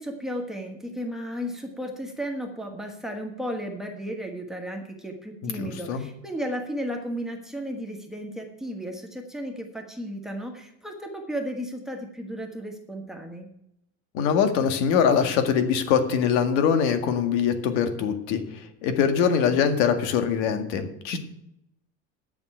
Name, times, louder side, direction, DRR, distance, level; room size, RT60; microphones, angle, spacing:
voice 1, 0.0-13.5, equal, ahead, 3 dB, 1.5 m, -34 dB
voice 2, 5.4-6.0 14.1-21.2, left 7 dB, 80° left, 7 dB, 1.9 m, -23 dB
9.1 x 7.1 x 9.0 m, 0.79 s
cardioid pair, 160°, 33 cm